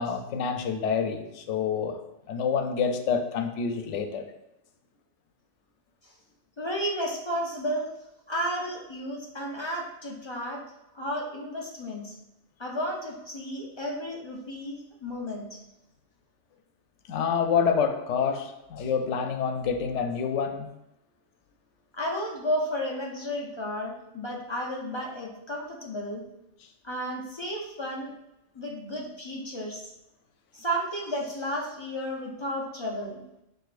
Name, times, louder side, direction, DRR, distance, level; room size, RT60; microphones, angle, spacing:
voice 1, 0.0-2.0 2.3-4.2 17.1-20.7, left 6 dB, 90° left, 6 dB, 0.9 m, -27 dB
voice 2, 6.6-7.9 8.3-10.6 10.9-12.2 12.6-15.6 21.9-26.2 26.8-28.1 28.5-29.9 30.5-33.2, equal, 35° left, -2 dB, 0.5 m, -33 dB
6.1 x 2.6 x 2.4 m, 0.86 s
omnidirectional pair, 1.2 m